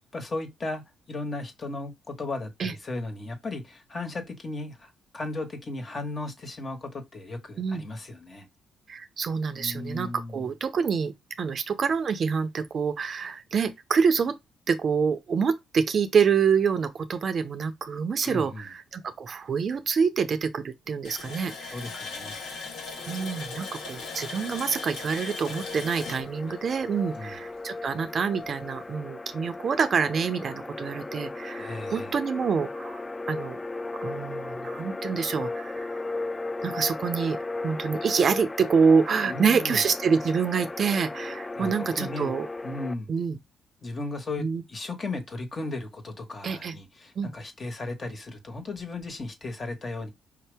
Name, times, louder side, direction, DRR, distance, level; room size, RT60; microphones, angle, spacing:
voice 1, 0.1-0.8 1.1-8.4 9.5-10.4 18.2-18.7 21.7-22.4 27.1-27.4 31.6-32.1 39.3-39.8 41.6-42.3 42.6-43.1 43.8-50.1, left 2 dB, 35° left, 1.5 m, -36 dB
voice 2, 8.9-14.3 14.7-21.8 23.1-33.6 34.0-35.9 36.6-37.4 37.6-42.5 43.1-43.4 44.4-44.6 46.4-46.8 47.2-47.3, right 6 dB, 50° right, 0.6 m, -26 dB
Water tap faucet, 21.0-27.5 27.9-28.0 28.4-28.6, left 4 dB, 80° left, 1.6 m, -39 dB
sound 1, 23.0-42.9, left 2 dB, 20° left, 0.3 m, -36 dB
5.1 x 2.9 x 3.4 m
cardioid pair, 90°, 0 cm